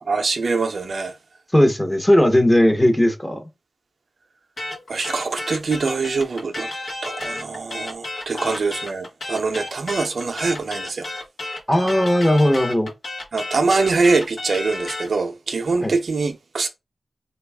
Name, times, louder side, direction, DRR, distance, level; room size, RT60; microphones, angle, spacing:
voice 1, 0.1-1.1 4.9-6.7 7.0-11.1 13.3-16.7, right 4 dB, 65° right, 0.4 m, -23 dB
voice 2, 1.5-3.4 8.3-8.6 11.7-12.9 15.8-15.9, left 1 dB, 10° left, 0.8 m, -17 dB
sound 1, 4.6-15.1, left 2 dB, 75° left, 1.0 m, -32 dB
3.4 x 2.3 x 3.4 m
wide cardioid pair, 80°, 0 cm